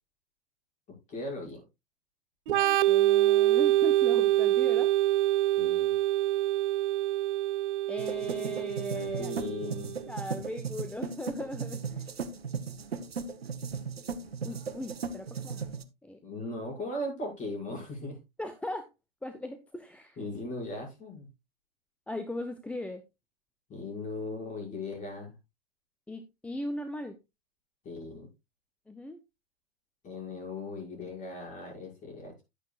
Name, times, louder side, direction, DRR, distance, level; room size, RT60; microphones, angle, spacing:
voice 1, 1.1-1.6 2.5-2.6 5.6-5.9 8.9-9.9 16.2-18.2 20.2-21.3 23.7-25.3 27.8-28.3 30.0-32.4, left 2 dB, 25° left, 0 dB, 6.0 m, -38 dB
Organ, 2.5-10.0, right 15 dB, 60° right, 0.4 m, -26 dB
voice 2, 2.9-4.9 7.9-9.7 10.1-12.1 14.4-15.7 16.0-16.2 18.4-18.9 19.2-20.2 22.1-23.0 26.1-27.2 28.9-29.2, left 1 dB, 5° left, 9 dB, 0.6 m, -38 dB
sound 1, 8.0-15.8, right 5 dB, 85° right, 1.1 m, -37 dB
11.0 x 9.3 x 2.4 m, 0.23 s
hypercardioid pair, 115°, 30 cm